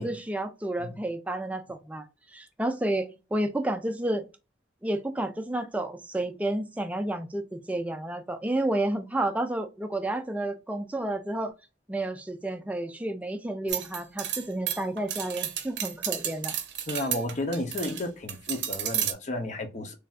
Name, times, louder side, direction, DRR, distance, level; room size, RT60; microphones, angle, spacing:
voice 1, 0.0-4.2 4.8-11.5 11.9-16.5, right 1 dB, 10° right, 0.3 m, -31 dB
sound 1, 13.7-18.0 18.3-19.1, right 10 dB, 80° right, 0.6 m, -32 dB
voice 2, 16.9-19.9, left 1 dB, 40° left, 0.6 m, -32 dB
3.2 x 2.5 x 2.3 m
head